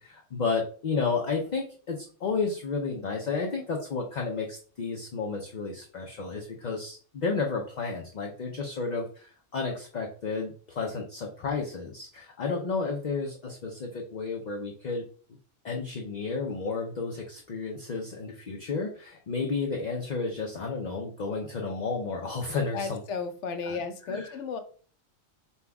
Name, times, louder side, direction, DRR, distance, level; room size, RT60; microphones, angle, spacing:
voice 1, 0.0-15.0 15.6-23.0 23.6-23.8 24.1-24.4, left 4 dB, 50° left, 0 dB, 0.5 m, -32 dB
voice 2, 22.7-24.6, left 5 dB, 70° left, 8 dB, 0.9 m, -34 dB
5.5 x 2.3 x 3.4 m, 0.43 s
omnidirectional pair, 1.3 m